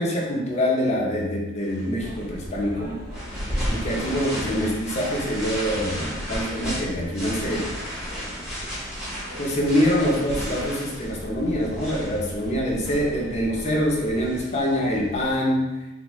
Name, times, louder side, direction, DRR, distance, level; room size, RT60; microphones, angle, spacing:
voice 1, 0.0-2.9 3.7-7.7 9.4-15.6, equal, 35° left, -3 dB, 0.6 m, -25 dB
sound 1, 1.6-15.3, equal, 5° right, 1.0 m, -34 dB
sound 2, 2.0-14.4, equal, 45° right, 0.6 m, -39 dB
3.3 x 2.1 x 3.0 m, 1.0 s
head